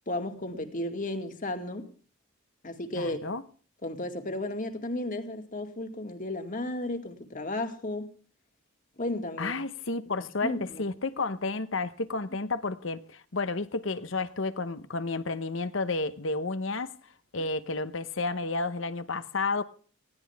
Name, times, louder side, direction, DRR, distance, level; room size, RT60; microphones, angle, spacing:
voice 1, 0.1-1.9 2.6-3.2 3.8-8.1 9.0-9.6 10.4-10.9, left 1 dB, 40° left, 2.2 m, -34 dB
voice 2, 2.9-3.4 9.4-10.5 10.8-16.9 17.3-19.6, left 3 dB, 65° left, 1.1 m, -31 dB
19.5 x 16.0 x 3.6 m
head